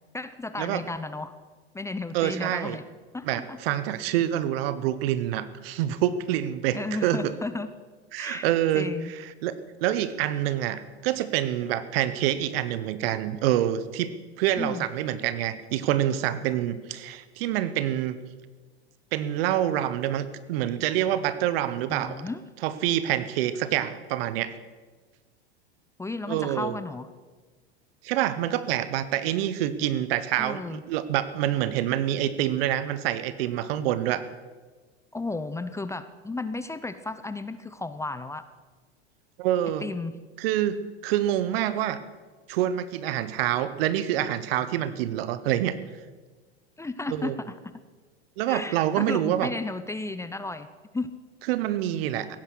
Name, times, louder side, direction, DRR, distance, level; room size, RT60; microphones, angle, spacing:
voice 1, 0.1-1.3 1.7-2.8 3.1-3.6 6.7-7.7 8.2-8.5 8.7-9.1 14.6-14.9 21.9-22.4 26.0-27.1 30.4-30.8 35.1-38.4 39.8-40.1 46.8-47.7 48.5-50.7 50.9-51.1, left 3 dB, 10° left, 12 dB, 0.7 m, -33 dB
voice 2, 2.1-2.8 3.3-7.3 8.1-9.5 9.8-14.1 14.4-18.2 19.1-22.2 22.6-24.5 26.3-26.8 28.0-34.2 39.4-39.8 40.4-40.8 41.0-42.0 42.5-45.8 47.1-47.3 48.4-49.5 51.5-52.3, right 12 dB, 60° right, 14 dB, 1.1 m, -26 dB
17.0 x 10.5 x 6.3 m, 1.4 s
hypercardioid pair, 100°, 33 cm